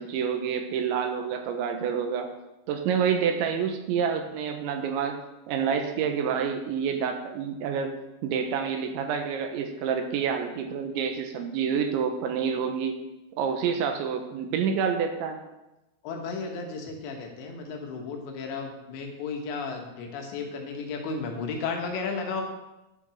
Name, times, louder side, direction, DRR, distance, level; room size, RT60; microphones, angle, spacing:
voice 1, 0.0-2.3 2.7-5.2 5.5-8.0 8.2-13.0 13.4-15.4, right 7 dB, 85° right, 5 dB, 3.4 m, -28 dB
voice 2, 16.0-22.4, left 4 dB, 75° left, 2 dB, 3.5 m, -34 dB
11.0 x 6.2 x 6.4 m, 0.99 s
omnidirectional pair, 5.2 m